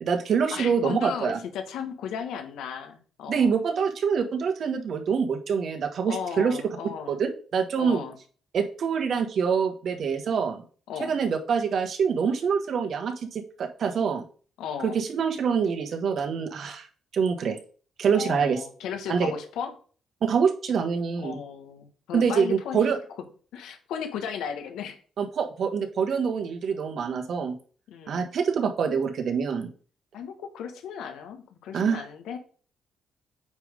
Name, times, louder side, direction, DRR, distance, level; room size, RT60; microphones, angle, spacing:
voice 1, 0.0-1.4 3.3-6.6 7.1-8.0 8.5-10.6 11.0-14.2 14.8-16.9 17.1-17.6 18.0-18.6 19.1-19.3 20.2-21.4 22.1-23.0 25.2-27.5 28.1-29.7 31.7-32.0, right 6 dB, 60° right, 5 dB, 1.4 m, -25 dB
voice 2, 0.5-3.5 6.1-7.2 7.8-8.2 10.9-11.2 14.6-15.0 18.1-19.7 21.2-22.8 23.5-25.0 27.9-28.3 30.1-32.4, left 7 dB, 85° left, 6 dB, 1.3 m, -35 dB
8.9 x 3.4 x 5.2 m, 0.41 s
cardioid pair, 90°, 0 cm